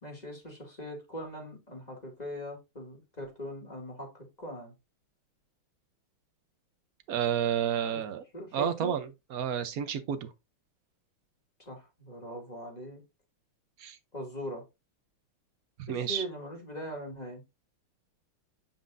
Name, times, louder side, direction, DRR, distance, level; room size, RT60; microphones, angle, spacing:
voice 1, 0.0-4.7 7.9-8.0 8.3-8.9 11.6-13.0 14.1-14.6 15.9-17.4, equal, 20° left, 2.5 m, -41 dB
voice 2, 7.1-8.2 8.5-10.3 13.8-14.0 15.8-16.2, right 9 dB, 80° right, 0.8 m, -31 dB
8.6 x 5.5 x 2.5 m
omnidirectional pair, 2.4 m